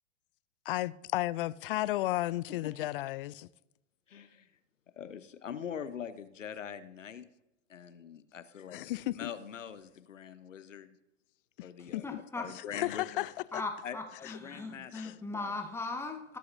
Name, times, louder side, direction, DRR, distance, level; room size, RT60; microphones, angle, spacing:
voice 1, 0.7-3.5 8.7-9.3 11.9-12.0 12.7-13.3 14.2-14.4 14.9-15.1, left 16 dB, 50° left, 0.4 m, -33 dB
voice 2, 4.1-4.5 5.0-7.3 7.7-8.8 9.1-11.0 11.6-12.1 12.3-13.3 13.8-15.6, left 8 dB, 85° left, 0.9 m, -43 dB
voice 3, 11.8-12.5 13.5-16.4, left 3 dB, 5° left, 1.2 m, -39 dB
18.0 x 7.7 x 2.6 m
hypercardioid pair, 110°, 37 cm